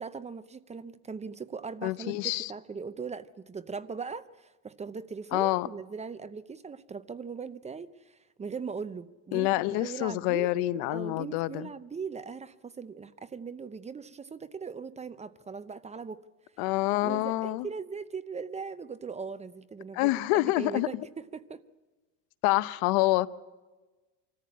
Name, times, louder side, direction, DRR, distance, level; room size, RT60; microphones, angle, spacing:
voice 1, 0.0-10.5 10.9-16.2 17.0-21.0 21.3-21.6, right 5 dB, 15° right, 0.6 m, -39 dB
voice 2, 1.8-2.5 5.3-5.7 9.3-11.7 16.6-17.7 19.9-21.1 22.4-23.3, left 18 dB, 75° left, 0.9 m, -27 dB
26.5 x 14.0 x 8.6 m
supercardioid pair, 120°, 39 cm